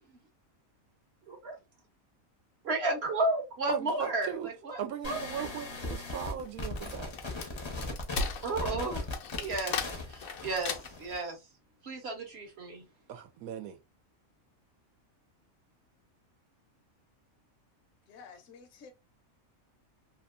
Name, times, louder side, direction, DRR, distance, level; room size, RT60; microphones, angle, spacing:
voice 1, 1.3-1.6 2.6-5.2 8.4-9.1 9.4-11.4 11.8-12.9, right 2 dB, 55° right, 0.9 m, -33 dB
voice 2, 3.7-4.5 4.8-7.1 13.1-13.8, right 8 dB, 85° right, 1.0 m, -38 dB
sound 1, 5.0-11.2, left 2 dB, 30° left, 0.5 m, -39 dB
Wood, 6.4-11.2, left 5 dB, 85° left, 1.0 m, -37 dB
voice 3, 18.1-18.9, left 5 dB, 65° left, 0.9 m, -51 dB
2.8 x 2.4 x 2.3 m
omnidirectional pair, 1.5 m